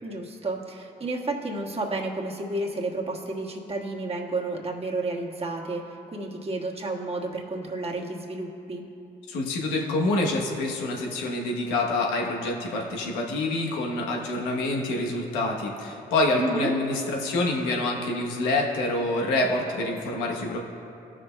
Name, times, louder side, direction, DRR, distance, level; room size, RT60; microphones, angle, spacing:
voice 1, 0.0-8.8 16.4-16.7, right 2 dB, 30° right, -1 dB, 1.5 m, -31 dB
voice 2, 9.3-20.6, left 2 dB, 90° left, 0 dB, 1.0 m, -26 dB
16.0 x 6.1 x 2.2 m, 2.8 s
supercardioid pair, 55°, 19 cm